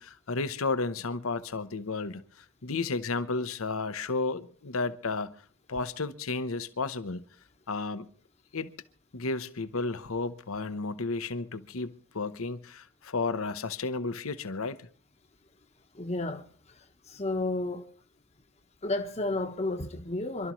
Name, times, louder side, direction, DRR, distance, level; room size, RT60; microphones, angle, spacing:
voice 1, 0.0-5.3 5.7-7.2 7.7-8.1 8.5-8.7 9.1-14.9, left 3 dB, 80° left, 0.9 m, -32 dB
voice 2, 15.9-17.8 18.8-20.5, left 2 dB, 30° left, 1.1 m, -32 dB
26.5 x 12.5 x 3.1 m
head